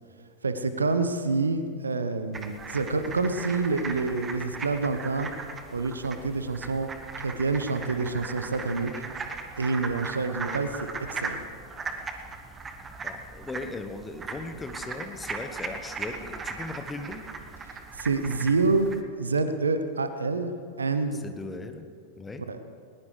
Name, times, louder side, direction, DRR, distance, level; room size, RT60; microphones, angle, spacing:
voice 1, 0.4-5.3 5.7-6.9 7.2-8.9 9.6-11.4 17.9-18.9 19.2-20.5 20.8-21.2 22.5-22.6, right 3 dB, 75° right, 10 dB, 1.0 m, -27 dB
sound 1, 2.3-19.0, right 4 dB, 20° right, 1.3 m, -38 dB
voice 2, 13.0-17.3 21.1-21.8 22.2-22.4, left 3 dB, 10° left, 7 dB, 1.3 m, -38 dB
20.5 x 20.0 x 3.4 m, 2.3 s
figure-of-eight pair, 90°, 0 cm